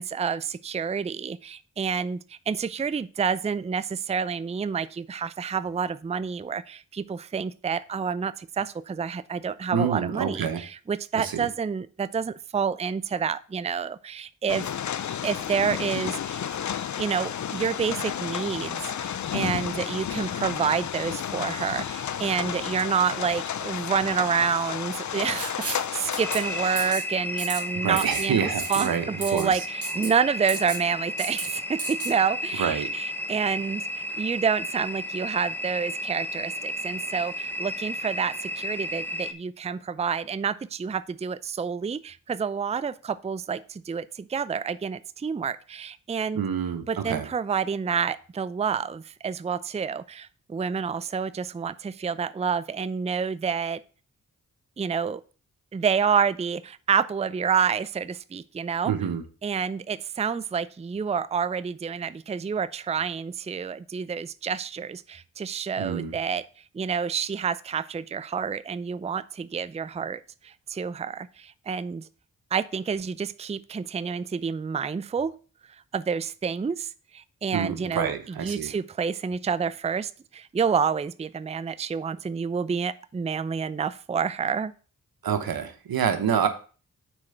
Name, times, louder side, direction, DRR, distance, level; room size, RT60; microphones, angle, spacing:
voice 1, 0.0-14.7 15.2-16.4 17.0-46.5 46.9-53.8 54.8-55.2 55.7-58.9 59.4-66.4 66.7-72.1 72.5-75.3 75.9-84.7, right 6 dB, 20° right, 15 dB, 0.4 m, -28 dB
voice 2, 9.7-10.6 11.1-11.5 27.8-29.0 29.3-29.6 32.6-32.9 46.3-47.3 58.8-59.2 65.8-66.2 77.5-78.7 85.2-86.5, right 7 dB, 85° right, 8 dB, 1.1 m, -27 dB
sound 1, 14.5-26.9, left 9 dB, 55° left, 0.5 m, -32 dB
Writing, 25.3-25.9 26.1-26.4 26.8-27.0 27.4-27.6 28.0-28.3 28.6-28.9 29.2-29.5 29.8-30.1 30.5-30.8 31.2-31.5 31.8-32.1, right 3 dB, 40° right, 1.6 m, -33 dB
sound 2, 26.2-39.3, equal, 5° left, 1.0 m, -33 dB
6.2 x 4.4 x 6.4 m, 0.38 s
cardioid pair, 45°, 35 cm